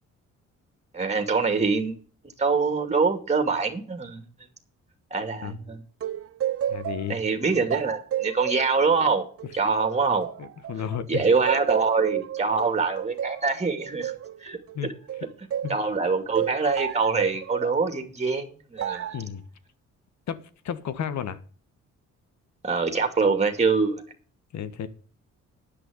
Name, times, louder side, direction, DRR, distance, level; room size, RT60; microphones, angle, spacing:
voice 1, 0.9-2.0 2.4-4.2 5.1-5.8 7.1-9.3 9.5-10.3 11.1-14.1 14.4-14.9 15.7-19.2 22.6-24.0, right 4 dB, 20° right, 6 dB, 2.5 m, -24 dB
sound 1, 6.0-11.0 11.5-15.8 16.3-17.8 18.8-19.2, right 11 dB, 50° right, 0.7 m, -31 dB
voice 2, 6.7-7.2 10.4-11.2 14.7-14.9 15.6-15.8 19.1-19.4 20.3-21.4 24.5-24.9, left 8 dB, 65° left, 13 dB, 1.5 m, -32 dB
10.5 x 6.4 x 7.9 m, 0.41 s
cardioid pair, 90°, 30 cm